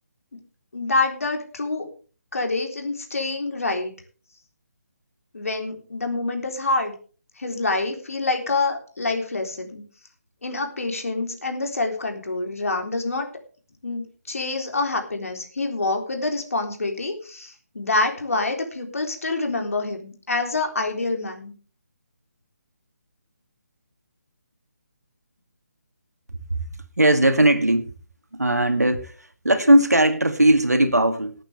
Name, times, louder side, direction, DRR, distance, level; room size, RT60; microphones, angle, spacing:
voice 1, 0.7-1.9 2.3-3.9 5.3-6.9 7.4-9.8 10.4-13.3 13.8-21.5, left 3 dB, 60° left, 3.8 m, -26 dB
voice 2, 27.0-27.9 28.3-31.3, right 1 dB, 75° right, 2.2 m, -18 dB
19.0 x 9.1 x 3.5 m
figure-of-eight pair, 150°, 9 cm